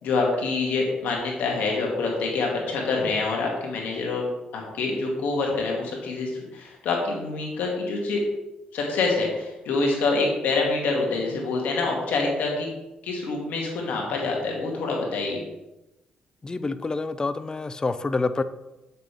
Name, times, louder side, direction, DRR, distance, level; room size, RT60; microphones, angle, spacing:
voice 1, 0.0-4.3 4.5-8.2 8.7-12.7 13.0-15.4, left 3 dB, 80° left, 0 dB, 2.1 m, -26 dB
voice 2, 16.4-18.4, left 3 dB, 25° left, 12 dB, 0.5 m, -27 dB
8.0 x 6.6 x 3.4 m, 0.98 s
cardioid pair, 75°, 3 cm